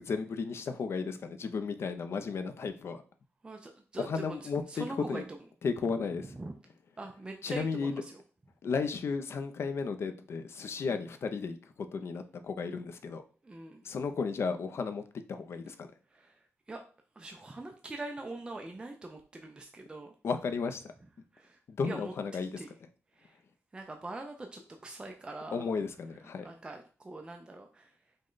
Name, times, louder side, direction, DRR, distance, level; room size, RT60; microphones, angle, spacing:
voice 1, 0.0-3.0 4.0-5.2 5.6-6.3 7.4-7.9 8.6-11.6 11.9-13.2 13.8-15.0 15.3-15.9 20.2-20.9 21.7-22.6 25.5-26.5, left 5 dB, 60° left, 9 dB, 0.4 m, -34 dB
voice 2, 3.4-5.2 6.2-6.5 7.0-8.2 10.9-11.0 13.4-13.8 16.1-16.8 17.1-20.1 21.3-22.7 23.1-23.4 23.7-25.7 26.4-27.9, right 2 dB, 20° right, 4 dB, 0.4 m, -43 dB
5.1 x 2.2 x 3.8 m, 0.39 s
wide cardioid pair, 160°, 5 cm